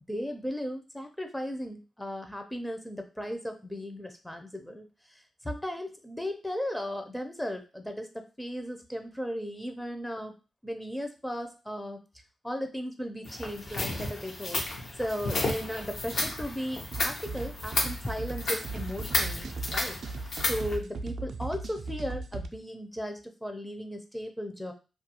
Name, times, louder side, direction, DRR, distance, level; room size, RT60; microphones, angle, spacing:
voice 1, 0.1-10.3 10.6-12.0 12.4-14.6 15.0-24.7, equal, 5° left, 5 dB, 0.5 m, -36 dB
sound 1, 13.2-20.8, left 2 dB, 70° left, 0.7 m, -33 dB
sound 2, 16.9-22.5, right 3 dB, 70° right, 0.3 m, -38 dB
2.3 x 2.3 x 2.8 m, 0.31 s
cardioid pair, 80°, 0 cm